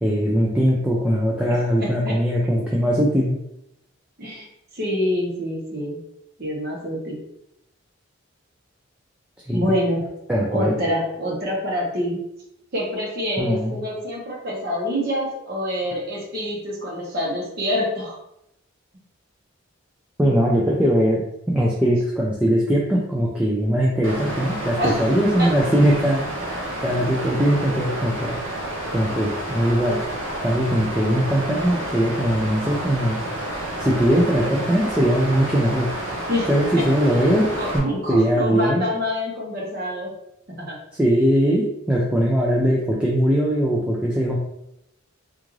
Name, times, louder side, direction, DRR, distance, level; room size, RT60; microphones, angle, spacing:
voice 1, 0.0-3.4 9.5-9.6 10.3-10.7 13.4-13.8 20.2-28.5 28.9-30.0 30.4-33.2 33.8-35.9 36.5-38.9 40.9-44.4, equal, 5° right, -4 dB, 0.3 m, -20 dB
voice 2, 1.8-2.2 4.2-4.5 4.7-6.0 6.4-7.2 9.5-10.1 10.5-12.2 12.7-18.2 24.8-25.0 25.4-25.5 36.3-36.5 37.6-40.1 40.6-40.8, equal, 50° right, -3 dB, 0.9 m, -26 dB
Water, 24.0-37.8, right 1 dB, 75° right, 0.8 m, -30 dB
3.6 x 2.5 x 3.1 m, 0.81 s
head